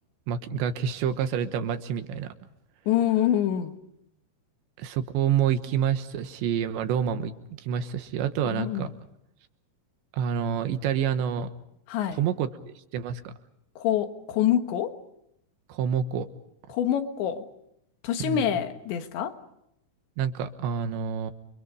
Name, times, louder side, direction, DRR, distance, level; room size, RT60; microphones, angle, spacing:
voice 1, 0.3-2.3 4.8-8.9 10.1-11.5 12.1-13.3 15.7-16.3 18.2-18.6 20.2-21.3, right 8 dB, 75° right, 9 dB, 3.3 m, -28 dB
voice 2, 2.9-3.7 8.5-8.9 11.9-12.2 13.8-15.0 16.7-17.5 18.0-19.3, left 10 dB, 70° left, 7 dB, 3.7 m, -26 dB
29.5 x 25.5 x 5.3 m, 0.79 s
omnidirectional pair, 5.6 m